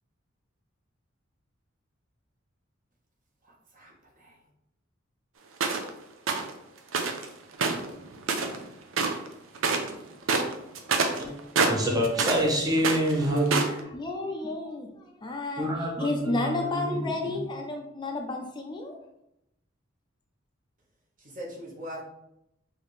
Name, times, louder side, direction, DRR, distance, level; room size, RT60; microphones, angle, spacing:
voice 1, 3.4-4.4 21.2-22.0, equal, 40° right, 1.1 m, -42 dB
sound 1, 5.6-5.9 6.3-6.5 6.9-7.2 7.5-8.6 8.9-9.3 9.5-9.9 10.2-12.5 12.8-13.8, right 4 dB, 80° right, 0.6 m, -26 dB
voice 2, 11.7-13.8 15.6-17.4, equal, 20° right, 0.7 m, -27 dB
voice 3, 13.9-19.0, left 2 dB, 25° left, 0.4 m, -32 dB
4.9 x 2.7 x 3.2 m
head